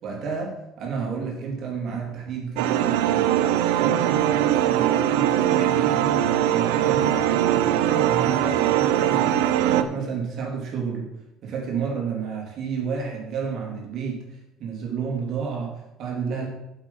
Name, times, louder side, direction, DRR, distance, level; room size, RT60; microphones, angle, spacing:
voice 1, 0.0-3.4 3.8-6.2 6.5-11.1 11.4-16.5, right 5 dB, 60° right, 0 dB, 3.2 m, -31 dB
sound 1, 2.6-9.8, right 11 dB, 90° right, 0.6 m, -21 dB
8.5 x 7.4 x 5.5 m, 0.90 s
supercardioid pair, 90°, 0 cm